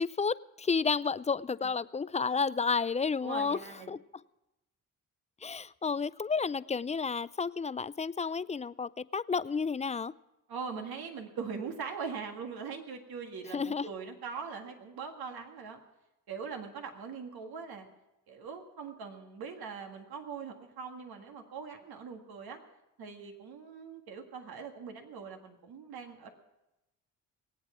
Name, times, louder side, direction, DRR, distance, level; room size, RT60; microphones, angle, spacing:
voice 1, 0.0-3.6 3.9-4.0 5.4-10.1 13.5-13.9, left 5 dB, 20° left, 18 dB, 0.4 m, -31 dB
voice 2, 3.2-4.0 10.5-15.8 16.3-17.9 18.3-22.6 23.0-26.3, right 5 dB, 75° right, 4 dB, 1.9 m, -41 dB
20.5 x 8.8 x 6.1 m, 0.94 s
supercardioid pair, 50°, 38 cm